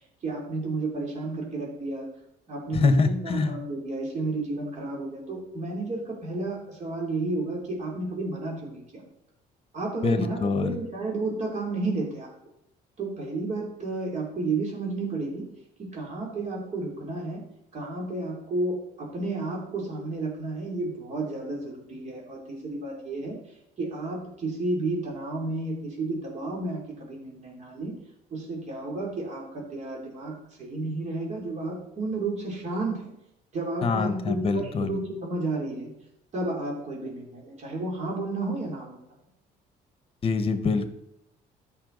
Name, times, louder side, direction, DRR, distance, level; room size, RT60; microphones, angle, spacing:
voice 1, 0.2-2.1 2.5-9.0 9.7-12.3 13.0-15.4 15.9-17.4 17.7-23.4 23.8-28.0 28.3-33.1 33.5-35.9 36.3-39.0, right 2 dB, 45° right, -2 dB, 3.1 m, -32 dB
voice 2, 2.7-3.5 10.0-10.8 33.8-35.0 40.2-40.9, left 4 dB, 35° left, 10 dB, 1.1 m, -24 dB
13.5 x 5.7 x 3.9 m, 0.80 s
cardioid pair, 110°, 17 cm